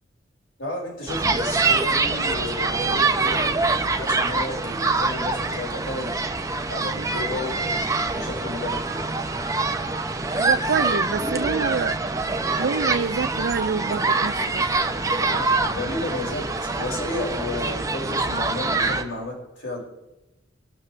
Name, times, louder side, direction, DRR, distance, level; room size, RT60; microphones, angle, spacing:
voice 1, 0.6-3.6 3.9-6.1 6.7-7.5 8.1-9.0 15.2-19.8, left 2 dB, 80° left, -2 dB, 6.0 m, -32 dB
sound 1, 1.1-19.0, right 3 dB, 15° right, 1.0 m, -25 dB
voice 2, 10.4-12.0 12.6-14.7, right 5 dB, 60° right, 17 dB, 0.5 m, -26 dB
25.5 x 12.5 x 3.4 m, 0.96 s
head